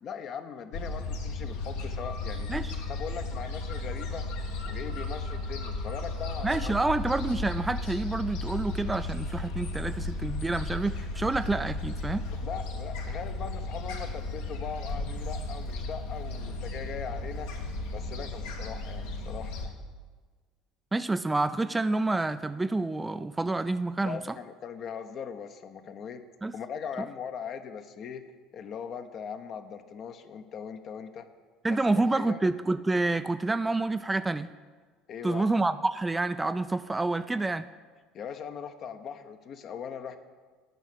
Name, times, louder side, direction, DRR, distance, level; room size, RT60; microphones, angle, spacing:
voice 1, 0.0-2.5 2.9-4.2 4.7-6.7 12.4-17.5 17.9-19.8 24.0-26.2 26.5-28.2 28.5-31.3 31.7-32.4 35.1-35.5 38.1-40.2, left 7 dB, 45° left, 8 dB, 0.8 m, -40 dB
Gull seagull, 0.7-19.7, left 2 dB, 65° left, 1.2 m, -35 dB
voice 2, 6.4-12.2 20.9-24.4 26.4-26.5 31.6-34.5 35.2-37.7, right 2 dB, 15° right, 12 dB, 0.4 m, -28 dB
9.1 x 5.9 x 8.4 m, 1.5 s
figure-of-eight pair, 65°, 0 cm